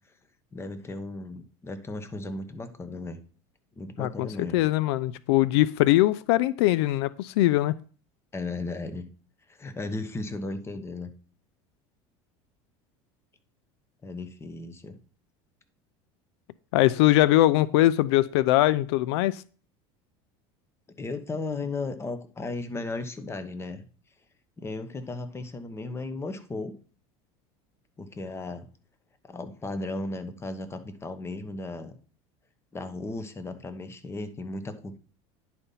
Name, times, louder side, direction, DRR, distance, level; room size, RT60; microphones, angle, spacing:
voice 1, 0.5-3.2 3.8-4.6 8.3-9.1 9.5-11.1 14.0-15.0 21.0-23.8 24.6-26.8 28.0-28.7 29.3-31.9 32.7-35.0, left 2 dB, 20° left, 10 dB, 1.1 m, -35 dB
voice 2, 4.0-7.7 16.7-19.4, left 16 dB, 80° left, 19 dB, 0.4 m, -22 dB
10.0 x 4.2 x 5.5 m, 0.40 s
supercardioid pair, 110°, 14 cm